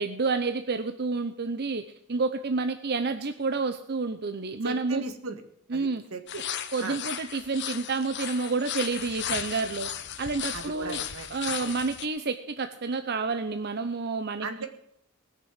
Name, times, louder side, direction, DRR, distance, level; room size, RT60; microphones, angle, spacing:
voice 1, 0.0-1.8 2.1-5.0 5.7-6.0 6.7-9.9 10.2-11.0 11.3-14.7, right 4 dB, 50° right, 9 dB, 0.8 m, -29 dB
voice 2, 4.6-5.4 5.7-6.4 6.8-7.0 10.5-11.3 11.6-11.8 14.4-14.7, right 3 dB, 80° right, 7 dB, 1.9 m, -37 dB
sound 1, 6.3-12.1, left 9 dB, 55° left, 1.1 m, -35 dB
19.5 x 6.8 x 7.7 m, 0.74 s
head